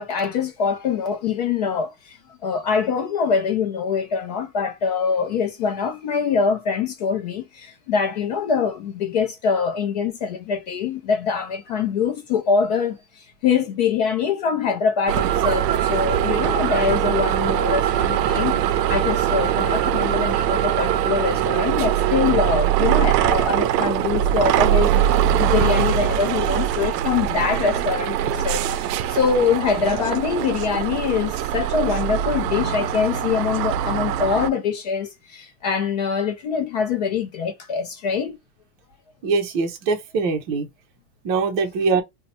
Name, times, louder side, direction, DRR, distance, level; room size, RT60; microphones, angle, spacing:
voice 1, 0.0-2.2 2.4-13.0 13.4-18.6 18.9-25.0 25.4-38.4, left 6 dB, 30° left, 0.4 m, -24 dB
sound 1, 15.1-34.5, right 11 dB, 85° right, 0.6 m, -22 dB
voice 2, 39.2-40.7 41.2-42.0, right 4 dB, 25° right, 0.6 m, -22 dB
2.8 x 2.1 x 4.0 m
supercardioid pair, 170°, 47 cm